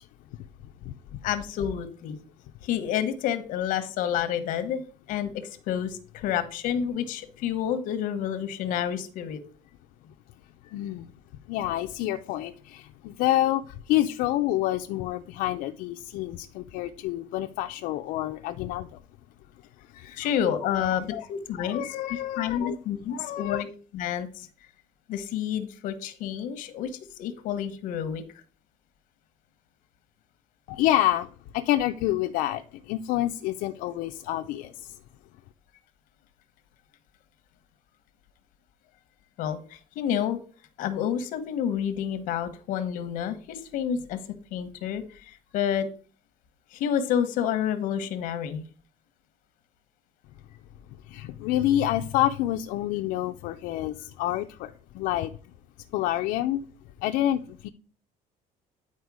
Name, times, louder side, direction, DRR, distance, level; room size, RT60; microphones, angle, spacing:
voice 1, 1.2-2.2 2.6-4.8 5.1-9.4 20.2-21.9 22.4-23.7 23.9-24.5 25.1-28.2 39.4-40.4 40.8-44.2 44.5-45.9 46.7-48.6, left 9 dB, 65° left, 11 dB, 1.0 m, -29 dB
voice 2, 10.7-11.1 11.5-13.6 13.9-18.9 19.9-20.3 20.8-20.9 21.1-21.3 21.6-22.8 23.1-23.6 30.7-31.3 31.5-32.6 32.9-34.7 51.1-54.7 55.0-55.3 55.9-56.6 57.0-57.7, left 13 dB, 85° left, 5 dB, 0.5 m, -27 dB
9.5 x 4.4 x 4.7 m, 0.41 s
cardioid pair, 180°, 14 cm